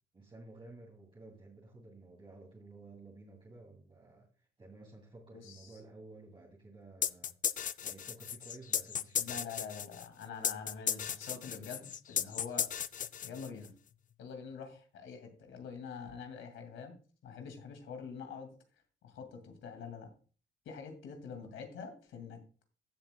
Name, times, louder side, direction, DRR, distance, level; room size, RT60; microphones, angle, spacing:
voice 1, 0.1-4.3 4.6-7.3 7.8-9.4, right 2 dB, 25° right, -3 dB, 2.5 m, -53 dB
voice 2, 5.3-5.8 9.2-12.7 13.2-13.7 14.2-16.9 17.2-18.5 19.0-20.1 20.7-22.4, left 5 dB, 75° left, 5 dB, 2.2 m, -45 dB
sound 1, 7.0-13.7, left 8 dB, 40° left, 0.4 m, -35 dB
15.0 x 7.1 x 2.2 m, 0.38 s
cardioid pair, 90°, 20 cm